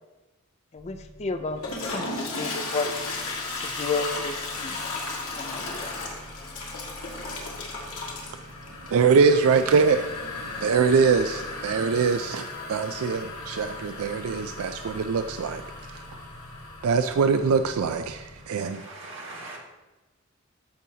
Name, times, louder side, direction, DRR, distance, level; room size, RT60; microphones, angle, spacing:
voice 1, 0.7-2.9 3.6-4.8 5.4-6.0, left 3 dB, 30° left, 0.4 m, -32 dB
sound 1, 0.7-18.4, equal, 40° right, 2.7 m, -48 dB
Toilet flush, 1.5-18.2, left 3 dB, 85° left, 1.8 m, -36 dB
voice 2, 8.9-10.1 10.6-15.6 15.9-16.0 16.8-18.8, right 5 dB, 80° right, 0.4 m, -23 dB
voice 3, 18.3-19.6, right 2 dB, 60° right, 1.9 m, -42 dB
13.5 x 5.5 x 2.8 m
head